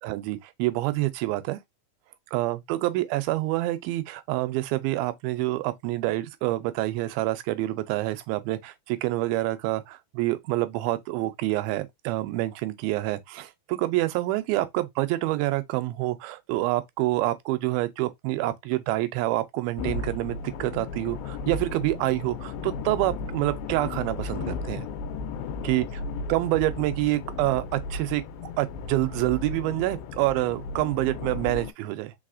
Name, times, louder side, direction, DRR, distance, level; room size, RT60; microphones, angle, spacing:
voice 1, 0.0-1.6 2.3-24.9 25.6-25.9 26.3-28.2 28.6-32.1, right 17 dB, 85° right, 2.4 m, -27 dB
sound 1, 19.8-31.7, left 4 dB, 80° left, 2.3 m, -35 dB
4.8 x 4.0 x 2.4 m
omnidirectional pair, 4.3 m